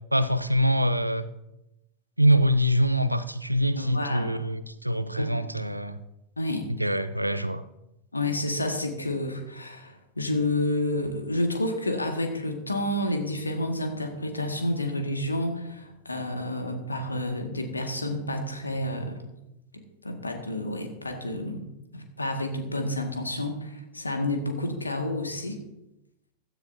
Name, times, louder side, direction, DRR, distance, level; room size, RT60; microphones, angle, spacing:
voice 1, 0.1-1.3 2.2-6.0 6.8-7.6, equal, 90° right, 0.6 m, -24 dB
voice 2, 3.7-4.3 5.2-5.4 6.4-6.6 8.1-19.2 20.0-21.7 21.9-25.6, left 1 dB, 80° left, 1.9 m, -30 dB
15.5 x 14.0 x 2.8 m
figure-of-eight pair, 90°, 0 cm